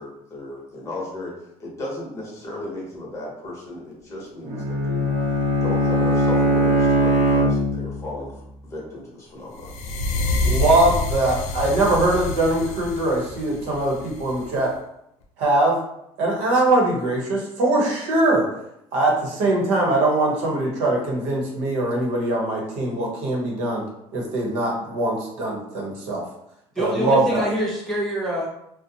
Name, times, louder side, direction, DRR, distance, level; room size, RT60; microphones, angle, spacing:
voice 1, 0.0-1.3 1.6-5.1 5.6-9.7, left 2 dB, 25° left, -4 dB, 0.8 m, -35 dB
Bowed string instrument, 4.5-8.1, equal, 45° right, 0.7 m, -20 dB
sound 1, 9.6-14.6, left 2 dB, 80° left, 0.4 m, -27 dB
voice 2, 10.4-14.7 15.4-15.8 16.2-18.5 18.9-23.8 24.1-26.2 26.8-27.4, right 2 dB, 80° right, -1 dB, 0.8 m, -22 dB
voice 3, 26.8-28.5, equal, ahead, -5 dB, 0.3 m, -25 dB
2.6 x 2.0 x 2.7 m, 0.79 s
cardioid pair, 145°, 12 cm